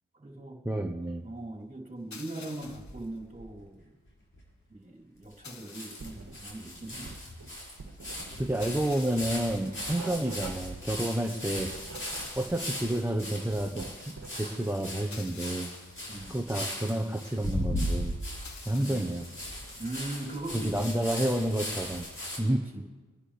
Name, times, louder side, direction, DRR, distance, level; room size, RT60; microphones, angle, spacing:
voice 1, 0.1-0.6 1.2-3.9 4.7-7.2 16.1-16.4 18.8-19.1 19.8-21.1 22.5-22.9, right 1 dB, 25° right, -3 dB, 3.6 m, -40 dB
voice 2, 0.6-1.3 8.4-11.7 12.4-15.7 16.3-18.1 18.6-19.3 20.5-22.1 22.4-22.6, right 1 dB, 5° right, 3 dB, 1.1 m, -30 dB
sound 1, 2.1-3.0 5.4-6.3 8.6-9.5 11.9-12.8 15.1-16.0 18.4-19.3, left 5 dB, 60° left, 1.2 m, -49 dB
sound 2, 2.6-3.5 4.1-4.2 4.3-4.4 5.3-5.4 5.7-22.4, left 1 dB, 40° left, 5.9 m, -38 dB
Writing, 6.0-6.7 6.9-12.7 13.0-14.5, right 4 dB, 55° right, 1.7 m, -46 dB
25.5 x 10.5 x 3.4 m, 1.3 s
cardioid pair, 50°, 33 cm